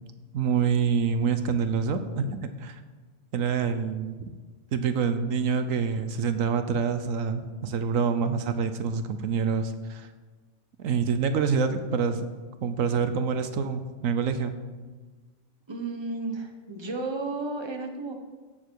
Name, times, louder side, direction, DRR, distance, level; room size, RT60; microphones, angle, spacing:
voice 1, 0.3-2.8 3.3-4.2 4.7-10.1 10.8-12.3 12.6-14.5, right 6 dB, 80° right, 9 dB, 1.1 m, -26 dB
voice 2, 15.7-18.1, right 3 dB, 20° right, 4 dB, 1.1 m, -33 dB
16.0 x 7.0 x 4.7 m, 1.4 s
omnidirectional pair, 1.4 m